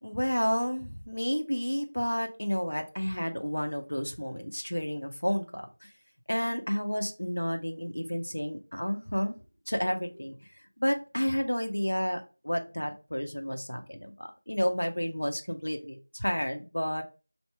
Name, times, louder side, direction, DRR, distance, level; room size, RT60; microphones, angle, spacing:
voice 1, 0.0-5.9 6.3-9.4 9.7-17.0, equal, 75° left, 5 dB, 0.7 m, -31 dB
2.8 x 2.2 x 4.2 m, 0.33 s
figure-of-eight pair, 175°, 0 cm